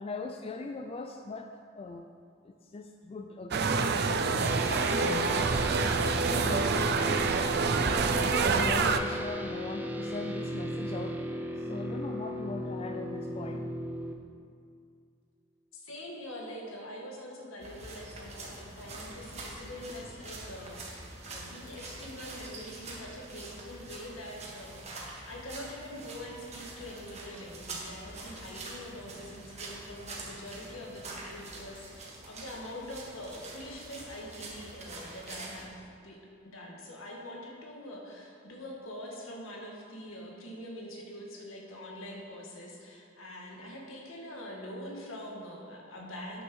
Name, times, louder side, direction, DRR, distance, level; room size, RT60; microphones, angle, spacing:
voice 1, 0.0-2.1 2.4-5.4 6.2-6.8 7.9-11.3 11.6-13.7, left 3 dB, 30° left, 5 dB, 0.3 m, -40 dB
sound 1, 3.5-9.0, right 4 dB, 50° right, 0.5 m, -27 dB
sound 2, 4.4-14.1, equal, 10° right, 0.6 m, -36 dB
voice 2, 15.7-46.4, left 1 dB, 80° left, -2 dB, 1.9 m, -44 dB
sound 3, 17.6-35.7, right 2 dB, 35° right, 1.5 m, -45 dB
9.2 x 6.4 x 6.2 m, 2.4 s
head